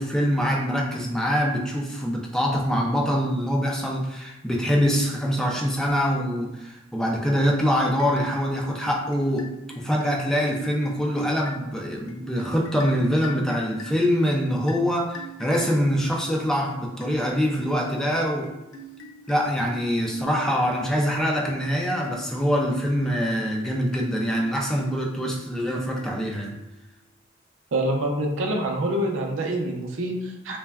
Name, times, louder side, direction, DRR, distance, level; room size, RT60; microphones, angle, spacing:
voice 1, 0.0-18.5 19.3-26.5, equal, 5° left, -1 dB, 0.3 m, -24 dB
sound 1, 7.7-26.9, right 2 dB, 75° left, 0.4 m, -44 dB
voice 2, 27.7-30.6, right 1 dB, 70° right, 1 dB, 0.5 m, -26 dB
3.3 x 2.1 x 2.2 m, 0.98 s
head